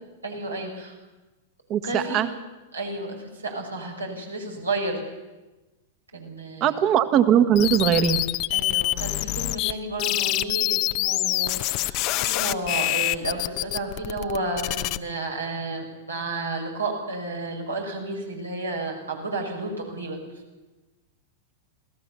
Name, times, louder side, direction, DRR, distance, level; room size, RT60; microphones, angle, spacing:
voice 1, 0.2-0.9 1.8-2.3 2.7-5.0 6.1-6.8 8.5-20.2, right 2 dB, 90° right, 0 dB, 6.0 m, -32 dB
voice 2, 1.7-2.3 6.6-8.2, right 9 dB, 40° right, 9 dB, 1.8 m, -20 dB
sound 1, 7.5-9.7 10.0-15.0, left 18 dB, 45° left, 0.8 m, -26 dB
26.5 x 17.0 x 7.0 m, 1.1 s
figure-of-eight pair, 100°, 0 cm